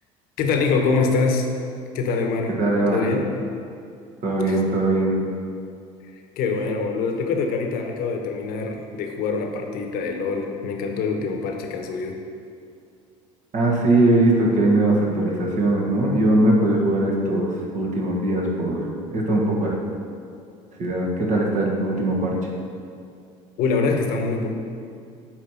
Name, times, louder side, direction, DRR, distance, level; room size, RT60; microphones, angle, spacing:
voice 1, 0.4-1.5 1.9-2.5 2.9-3.3 4.5-4.6 6.4-12.2 23.6-24.5, left 4 dB, 60° left, 3 dB, 1.0 m, -24 dB
voice 2, 2.6-3.0 4.2-5.2 13.5-19.7 20.8-22.4, right 1 dB, 50° right, -2 dB, 1.5 m, -20 dB
8.7 x 3.2 x 5.7 m, 2.4 s
hypercardioid pair, 80°, 17 cm